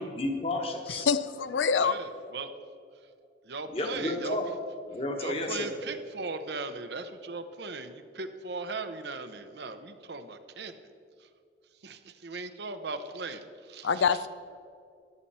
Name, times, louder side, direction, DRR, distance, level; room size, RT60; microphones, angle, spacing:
voice 1, 0.0-1.1 3.7-4.5 4.9-5.7, left 1 dB, 35° left, 4 dB, 1.3 m, -32 dB
voice 2, 1.1-1.9 13.8-14.3, left 6 dB, 90° left, 13 dB, 0.5 m, -25 dB
voice 3, 1.8-2.5 3.5-4.4 5.2-10.7 11.8-14.0, right 3 dB, 65° right, 9 dB, 0.8 m, -38 dB
14.0 x 10.5 x 4.3 m, 2.4 s
head